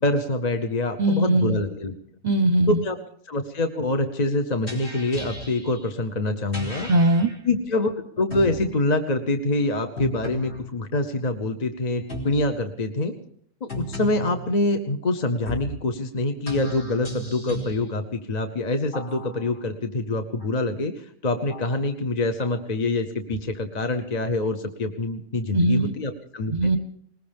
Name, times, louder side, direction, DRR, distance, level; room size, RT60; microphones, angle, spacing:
voice 1, 0.0-1.9 2.7-3.0 3.3-6.9 7.4-13.1 13.6-26.8, left 2 dB, 35° left, 7 dB, 0.9 m, -25 dB
voice 2, 1.0-1.6 2.2-2.8 6.9-7.3 25.5-25.9 26.5-26.8, right 1 dB, 40° right, 8 dB, 0.8 m, -20 dB
sound 1, 4.7-5.8 6.5-7.3 8.3-8.7 10.0-10.6 12.1-12.5 13.7-14.5 15.5-15.8 16.5-17.8 18.9-19.6 20.4-20.5 21.5-21.7 22.4-22.5, equal, 55° left, 3.4 m, -34 dB
20.5 x 20.0 x 3.5 m, 0.64 s
omnidirectional pair, 1.4 m